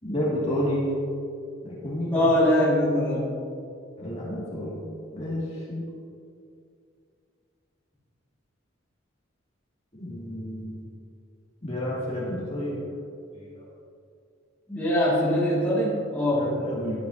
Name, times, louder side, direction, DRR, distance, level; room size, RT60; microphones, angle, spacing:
voice 1, 0.0-0.9 1.6-2.3 4.0-4.8 5.1-5.8 9.9-10.8 11.6-12.8 13.3-13.6 16.3-17.0, left 1 dB, 30° left, -6 dB, 2.1 m, -30 dB
voice 2, 2.1-3.3 14.7-16.5, left 1 dB, 5° left, -9 dB, 2.0 m, -22 dB
12.5 x 8.6 x 2.7 m, 2.4 s
head